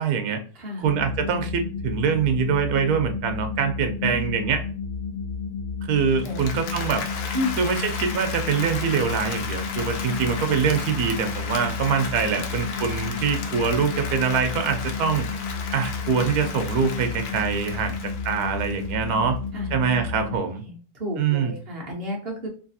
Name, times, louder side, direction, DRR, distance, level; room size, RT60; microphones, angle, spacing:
voice 1, 0.0-0.4 0.8-4.6 5.9-7.0 7.6-15.3 15.7-18.0 18.2-19.4 19.7-20.6 21.2-21.5, right 6 dB, 80° right, 6 dB, 1.2 m, -24 dB
voice 2, 0.5-0.9 4.0-4.3 6.2-6.4 7.3-7.6 10.0-10.3 19.5-19.7 20.6-22.5, left 1 dB, 45° right, -1 dB, 1.1 m, -31 dB
sound 1, 0.8-20.4, left 5 dB, 40° left, 0.9 m, -32 dB
Applause, 6.1-19.1, left 5 dB, 80° left, 1.2 m, -35 dB
3.2 x 2.6 x 2.6 m, 0.42 s
omnidirectional pair, 1.7 m